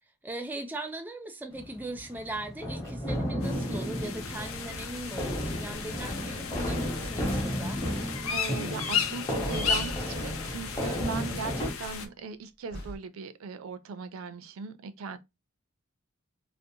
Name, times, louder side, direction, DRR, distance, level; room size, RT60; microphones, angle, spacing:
voice 1, 0.2-7.8, right 2 dB, 10° right, 0.3 m, -39 dB
sound 1, 1.5-11.7, equal, 15° left, 0.8 m, -33 dB
sound 2, 3.4-12.1, left 6 dB, 75° left, 0.5 m, -35 dB
sound 3, 5.1-11.8 12.7-13.0, left 1 dB, 50° left, 1.0 m, -44 dB
voice 2, 8.3-15.2, right 5 dB, 85° right, 0.4 m, -39 dB
2.5 x 2.0 x 2.7 m
head